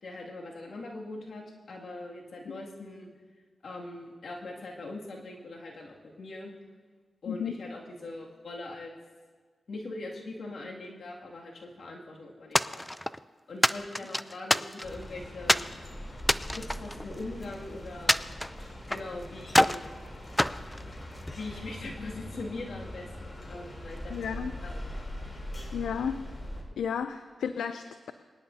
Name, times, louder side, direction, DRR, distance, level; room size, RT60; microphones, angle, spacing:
voice 1, 0.0-3.1 3.6-6.5 7.2-8.9 9.7-12.8 13.5-15.6 16.5-18.2 18.9-19.8 21.0-25.1, left 2 dB, 70° left, -2 dB, 2.3 m, -41 dB
sound 1, 12.5-13.2 13.6-15.0 15.5-15.7 16.2-17.5 18.1-19.1 19.5-19.9 20.4-21.4, left 1 dB, 10° left, 0.4 m, -27 dB
sound 2, 14.8-26.6, left 1 dB, 45° left, 3.3 m, -42 dB
voice 2, 24.1-24.5 25.7-26.2 26.8-28.1, left 7 dB, 85° left, 10 dB, 0.4 m, -33 dB
22.5 x 11.0 x 2.7 m, 1.5 s
supercardioid pair, 40°, 0 cm